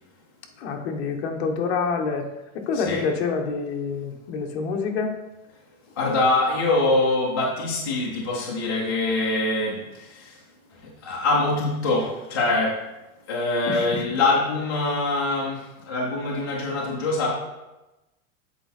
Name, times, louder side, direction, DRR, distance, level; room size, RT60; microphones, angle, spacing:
voice 1, 0.6-2.3 2.5-5.1 13.7-14.0, left 5 dB, 50° left, 3 dB, 1.0 m, -27 dB
voice 2, 2.7-3.0 6.0-10.4 10.8-12.8 13.3-17.3, left 2 dB, 20° left, -4 dB, 0.3 m, -24 dB
8.0 x 4.2 x 4.1 m, 1.0 s
supercardioid pair, 170°, 43 cm